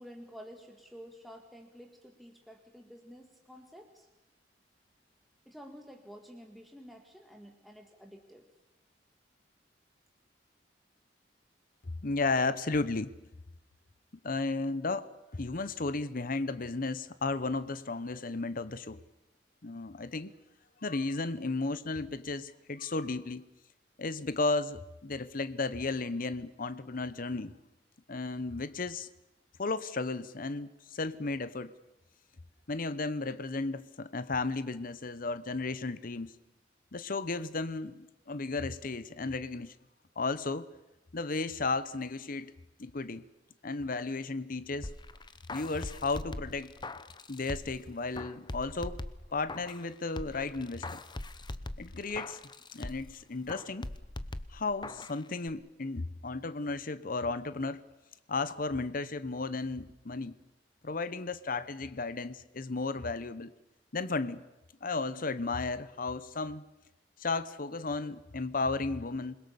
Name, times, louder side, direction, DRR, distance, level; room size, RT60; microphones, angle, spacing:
voice 1, 0.0-4.1 5.5-8.5, equal, ahead, 4 dB, 1.9 m, -50 dB
voice 2, 12.0-13.1 14.2-19.0 19.6-20.3 20.8-23.4 24.0-27.5 28.1-29.1 29.6-31.7 32.7-36.3 36.9-39.7 40.2-40.7 41.1-42.5 42.8-43.2 43.6-44.9 45.5-46.7 47.3-49.0 49.3-51.0 51.8-52.4 52.7-53.9 54.5-57.8 58.3-60.4 60.8-63.5 63.9-64.4 64.8-66.6 67.2-69.4, left 3 dB, 50° left, 14 dB, 0.9 m, -34 dB
sound 1, 44.8-47.8 48.2-49.9 50.2-53.2 53.5-55.2 55.5-55.6, left 2 dB, 25° left, 0.9 m, -41 dB
27.5 x 21.5 x 7.0 m, 0.97 s
head